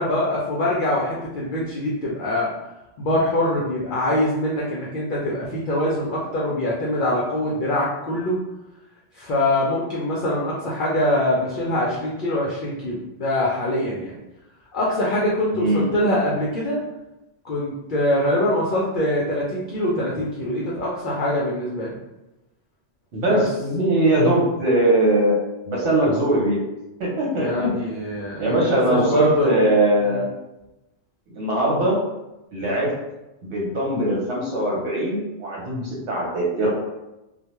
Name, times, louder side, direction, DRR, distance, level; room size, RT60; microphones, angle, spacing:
voice 1, 0.0-2.5 3.0-8.4 9.1-14.1 14.7-16.8 17.4-22.0 23.3-23.4 27.4-29.6 30.1-30.3, left 1 dB, 60° left, -5 dB, 0.6 m, -23 dB
voice 2, 15.5-15.8 23.1-25.4 25.6-26.6 27.0-27.9 28.4-30.2 31.3-32.0 32.5-32.9 33.4-36.7, right 1 dB, 75° right, -3 dB, 1.1 m, -21 dB
2.2 x 2.2 x 2.9 m, 0.97 s
omnidirectional pair, 1.2 m